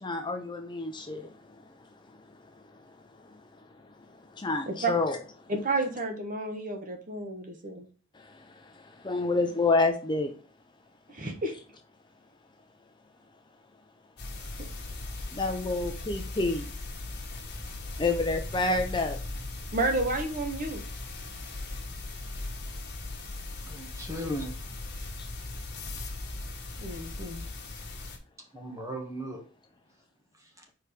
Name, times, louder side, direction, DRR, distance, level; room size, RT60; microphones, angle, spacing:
voice 1, 0.0-1.3 3.2-3.3 4.3-5.2 8.1-10.3 15.3-16.7 18.0-19.2, left 3 dB, 20° left, 0.6 m, -28 dB
voice 2, 5.5-7.9 11.1-11.5 19.7-20.8 26.8-27.4, right 2 dB, 40° right, 1.2 m, -31 dB
sound 1, 14.2-28.2, left 2 dB, 50° left, 1.7 m, -38 dB
voice 3, 23.6-24.5 28.5-29.4 30.4-30.6, equal, 15° right, 1.7 m, -37 dB
4.8 x 4.7 x 5.0 m
head